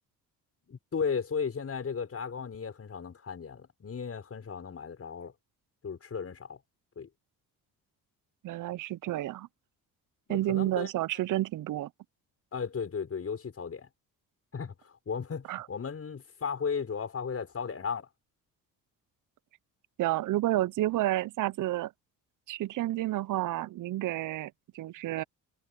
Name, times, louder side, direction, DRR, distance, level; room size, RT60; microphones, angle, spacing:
voice 1, 0.7-5.3 5.8-6.6 7.0-7.1 10.3-10.9 12.5-13.9 14.5-18.1, left 6 dB, 40° left, 6.0 m, -35 dB
voice 2, 8.4-9.5 10.3-11.9 15.5-15.7 20.0-21.9 22.5-25.2, right 15 dB, 55° right, 0.6 m, -30 dB
cardioid pair, 85°, 36 cm